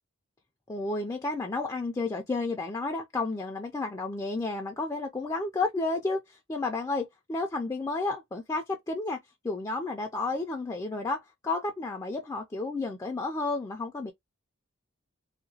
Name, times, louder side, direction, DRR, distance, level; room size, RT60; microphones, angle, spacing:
voice 1, 0.7-9.2 9.4-14.1, left 3 dB, 15° left, 0.3 m, -31 dB
2.8 x 2.1 x 2.7 m
head